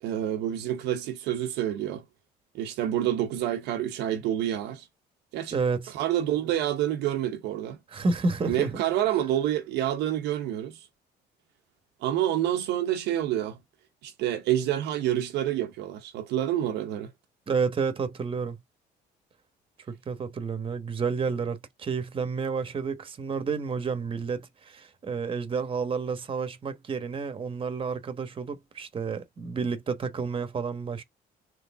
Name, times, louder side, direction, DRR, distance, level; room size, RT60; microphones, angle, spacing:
voice 1, 0.0-2.0 2.5-4.9 5.3-5.5 5.9-7.8 8.5-10.8 12.0-13.6 14.0-17.1, right 12 dB, 85° right, 0.8 m, -28 dB
voice 2, 5.5-5.9 7.9-8.8 17.5-18.6 19.9-31.0, right 5 dB, 30° right, 1.1 m, -30 dB
3.9 x 3.3 x 3.5 m
cardioid pair, 110°, 17 cm